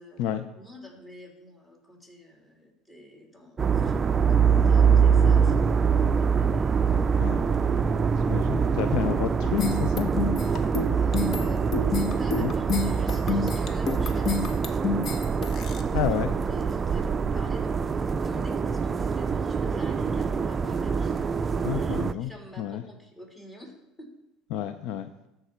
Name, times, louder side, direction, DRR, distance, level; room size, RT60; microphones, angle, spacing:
voice 1, 0.0-7.3 10.4-10.6 10.9-15.4 15.8-16.1 16.4-21.2 21.7-24.1, equal, 15° left, 0 dB, 2.7 m, -47 dB
sound 1, 3.6-22.1, right 6 dB, 30° right, 0.4 m, -24 dB
voice 2, 8.2-10.1 12.4-12.5 15.9-16.3 21.6-22.3 22.6-22.8 24.5-25.1, left 10 dB, 70° left, 10 dB, 0.4 m, -30 dB
sound 2, 9.6-15.8, left 4 dB, 45° left, 0.9 m, -29 dB
13.0 x 4.8 x 4.3 m, 0.87 s
hypercardioid pair, 80°, 0 cm